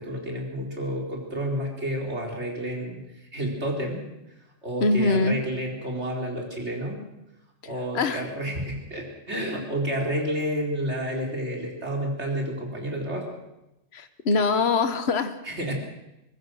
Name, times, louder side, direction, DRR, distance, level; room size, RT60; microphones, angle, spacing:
voice 1, 0.0-4.0 4.6-7.0 7.6-13.3 15.4-15.7, right 1 dB, 65° right, 1 dB, 4.7 m, -30 dB
voice 2, 4.8-5.4 7.9-8.2 13.9-15.4, left 3 dB, 60° left, 10 dB, 1.5 m, -23 dB
23.0 x 20.0 x 6.5 m, 0.92 s
omnidirectional pair, 1.3 m